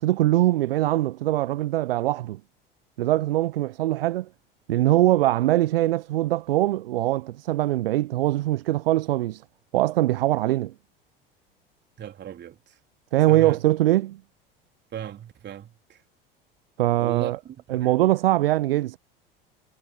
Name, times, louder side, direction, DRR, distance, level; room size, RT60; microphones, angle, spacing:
voice 1, 0.0-2.4 3.0-4.3 4.7-9.4 9.7-10.7 13.1-14.2 16.8-17.4 17.7-19.0, right 15 dB, 75° right, 0.6 m, -22 dB
voice 2, 12.0-12.6 13.3-13.6 14.9-15.7 17.0-18.0, right 10 dB, 35° right, 3.5 m, -36 dB
figure-of-eight pair, 75°, 29 cm